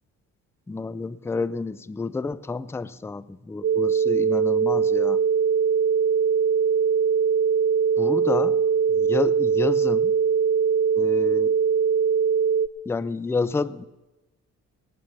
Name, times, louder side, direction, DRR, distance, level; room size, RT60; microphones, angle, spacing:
voice 1, 0.7-5.2 8.0-8.6 8.9-10.1 11.0-11.6 12.9-13.9, left 3 dB, 10° left, 17 dB, 0.4 m, -29 dB
sound 1, 3.6-12.7, right 6 dB, 40° right, 0.6 m, -21 dB
18.0 x 8.8 x 6.8 m, 1.1 s
cardioid pair, 90°, 30 cm